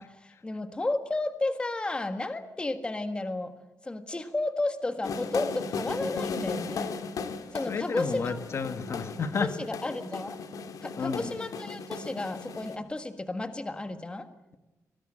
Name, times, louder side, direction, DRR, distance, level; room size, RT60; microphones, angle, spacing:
voice 1, 0.0-3.5 3.8-6.9 7.5-8.7 9.4-10.4 10.8-14.3, left 2 dB, 15° left, 9 dB, 1.5 m, -33 dB
sound 1, 5.0-12.8, left 5 dB, 75° left, 2.3 m, -36 dB
voice 2, 7.7-9.5 11.0-11.3, left 5 dB, 50° left, 10 dB, 1.4 m, -31 dB
24.5 x 20.0 x 8.8 m, 1.0 s
wide cardioid pair, 175°, 6 cm